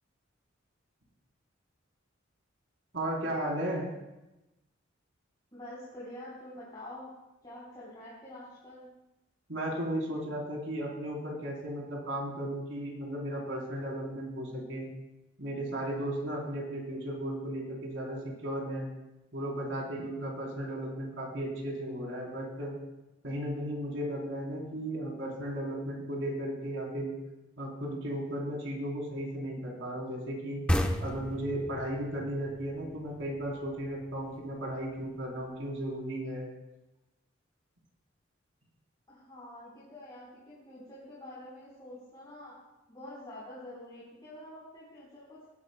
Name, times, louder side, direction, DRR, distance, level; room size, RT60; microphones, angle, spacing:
voice 1, 2.9-3.9 9.5-14.9 15.4-18.9 19.3-22.8 23.2-27.1 27.6-30.6 31.0-36.5, right 1 dB, 65° right, -1 dB, 3.7 m, -35 dB
voice 2, 5.5-7.1 7.4-8.8 39.1-42.5 42.9-45.5, left 1 dB, 20° left, -9 dB, 4.1 m, -47 dB
sound 1, 30.7-34.1, equal, 5° left, 0.7 m, -33 dB
19.0 x 13.0 x 2.2 m, 0.99 s
head